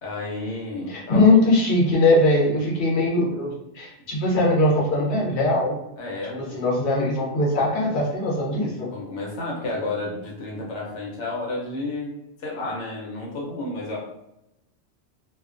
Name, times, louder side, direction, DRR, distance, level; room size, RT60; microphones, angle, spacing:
voice 1, 0.0-1.3 6.0-6.6 8.9-12.1 12.4-14.0, left 2 dB, 90° left, -3 dB, 1.0 m, -31 dB
voice 2, 0.9-5.8 6.4-8.9, left 2 dB, 50° left, -3 dB, 0.8 m, -21 dB
2.4 x 2.2 x 2.4 m, 0.86 s
omnidirectional pair, 1.2 m